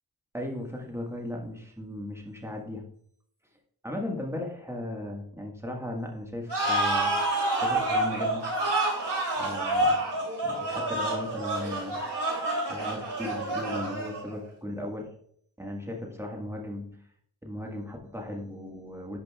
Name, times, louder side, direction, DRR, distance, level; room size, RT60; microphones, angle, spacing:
voice 1, 0.3-2.8 3.8-7.2 7.6-8.5 9.4-10.0 10.4-12.0 12.7-15.1 15.6-17.0 17.4-19.2, left 1 dB, 5° right, 0 dB, 1.6 m, -36 dB
sound 1, 6.5-14.3, right 1 dB, 60° right, 3.1 m, -28 dB
11.0 x 5.4 x 2.4 m, 0.64 s
wide cardioid pair, 70°, 47 cm